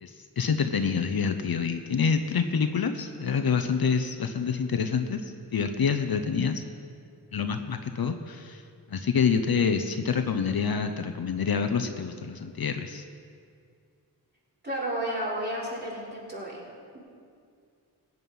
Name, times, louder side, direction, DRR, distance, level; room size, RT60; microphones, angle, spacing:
voice 1, 0.0-6.6 7.3-8.6 8.9-13.0, left 6 dB, 60° left, 7 dB, 0.8 m, -27 dB
voice 2, 14.6-16.6, right 1 dB, 25° right, -5 dB, 4.1 m, -32 dB
16.0 x 9.3 x 5.5 m, 2.3 s
cardioid pair, 75°, 41 cm